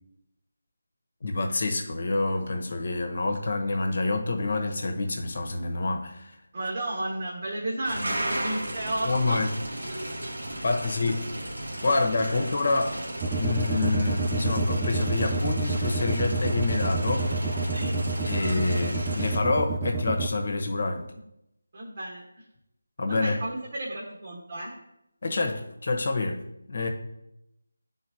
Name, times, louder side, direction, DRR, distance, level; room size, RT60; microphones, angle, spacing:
voice 1, 1.2-6.3 9.1-9.5 10.6-11.2 11.8-12.9 13.4-17.3 18.3-21.0 23.0-23.4 25.2-26.4 26.7-26.9, left 3 dB, 55° left, 4 dB, 0.9 m, -27 dB
voice 2, 6.5-9.4 12.1-12.6 17.7-18.0 21.7-22.2 23.1-24.7, right 1 dB, 45° right, -4 dB, 1.3 m, -33 dB
sound 1, 7.8-19.4, right 1 dB, 85° right, 1.5 m, -35 dB
sound 2, 13.2-20.3, right 3 dB, 15° right, 0.4 m, -28 dB
10.5 x 3.9 x 2.8 m, 0.85 s
figure-of-eight pair, 165°, 0 cm